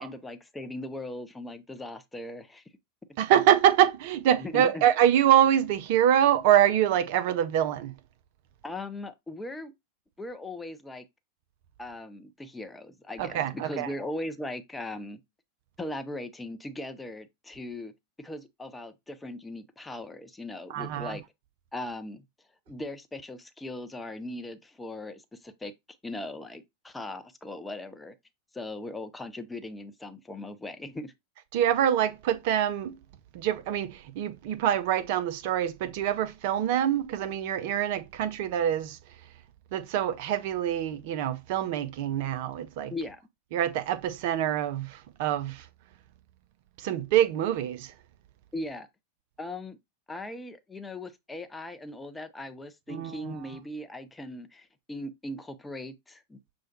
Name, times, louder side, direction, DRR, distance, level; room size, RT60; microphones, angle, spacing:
voice 1, 0.0-2.6 4.4-4.8 8.6-9.7 10.2-11.1 11.8-15.2 15.8-17.9 18.2-21.2 21.7-22.2 22.7-25.7 26.0-28.1 28.5-31.1 42.9-43.2 48.5-48.9 49.4-49.8 50.1-56.5, left 1 dB, 10° left, 0.4 m, -39 dB
voice 2, 3.2-7.9 13.2-13.9 20.7-21.2 31.5-33.0 33.3-39.0 39.7-42.9 43.5-45.6 46.8-47.9 52.9-53.4, right 10 dB, 50° right, 0.4 m, -25 dB
6.1 x 2.1 x 2.8 m
figure-of-eight pair, 90°, 0 cm